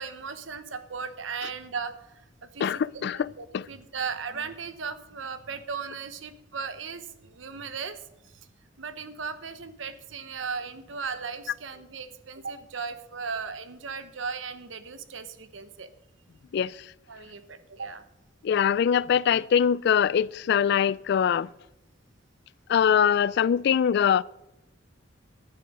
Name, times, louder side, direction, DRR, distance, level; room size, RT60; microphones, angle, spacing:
voice 1, 0.0-8.5 8.8-15.9 17.1-18.0, right 5 dB, 80° right, 1.0 m, -37 dB
voice 2, 2.6-3.7 16.5-16.8 18.4-21.5 22.7-24.2, left 8 dB, 60° left, 0.3 m, -23 dB
10.5 x 9.6 x 5.4 m
head